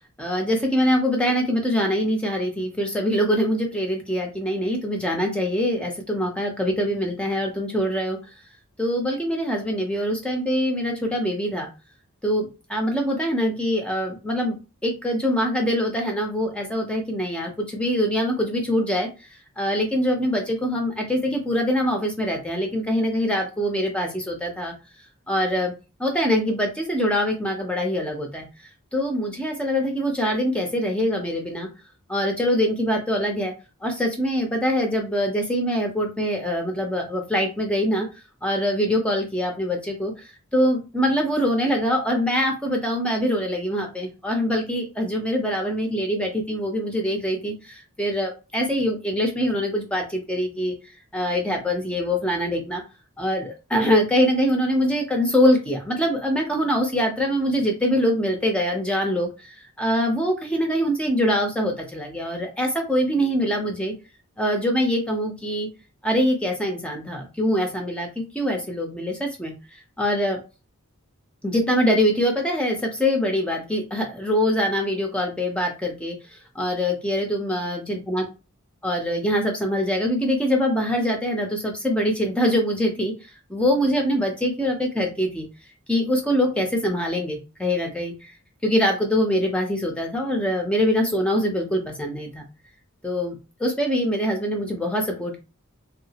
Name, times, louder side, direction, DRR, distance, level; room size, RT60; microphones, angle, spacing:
voice 1, 0.2-8.2 8.8-11.7 12.2-14.6 14.8-19.1 19.6-24.7 25.3-25.7 26.0-28.5 28.9-31.7 32.1-33.5 33.8-38.1 38.4-40.1 40.5-50.7 51.1-52.8 53.2-59.3 59.8-63.9 64.4-65.7 66.0-70.4 71.4-76.2 76.5-78.2 78.8-83.1 83.5-85.5 85.9-88.3 88.6-92.5 93.0-95.4, equal, 5° left, 2 dB, 0.6 m, -24 dB
2.8 x 2.4 x 2.8 m, 0.30 s
head